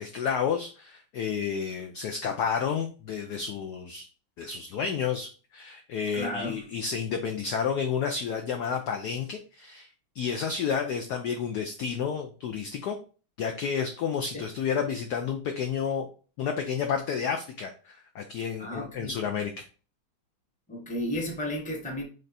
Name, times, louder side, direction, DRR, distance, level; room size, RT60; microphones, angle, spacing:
voice 1, 0.0-4.1 4.4-9.9 10.2-13.0 13.4-16.1 16.4-19.6, left 6 dB, 85° left, 5 dB, 0.8 m, -31 dB
voice 2, 6.1-6.6 14.3-14.4 18.6-19.1 20.7-22.0, left 1 dB, 5° left, 0 dB, 0.6 m, -33 dB
3.8 x 3.3 x 4.0 m, 0.37 s
omnidirectional pair, 2.3 m